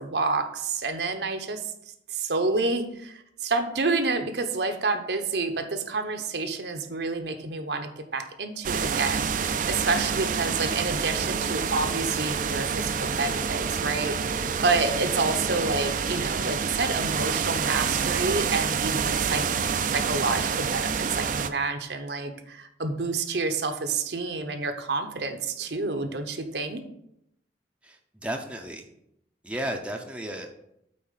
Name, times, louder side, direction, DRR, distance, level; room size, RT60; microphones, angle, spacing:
voice 1, 0.0-1.7 2.1-19.4 19.9-26.8, right 3 dB, 65° right, 7 dB, 0.9 m, -29 dB
sound 1, 8.6-21.5, right 6 dB, 45° right, 0.5 m, -28 dB
sound 2, 11.0-16.0, left 3 dB, 45° left, 0.8 m, -43 dB
voice 2, 27.8-28.9 29.4-30.5, right 1 dB, 5° right, 2 dB, 0.7 m, -33 dB
8.7 x 4.2 x 5.6 m, 0.78 s
head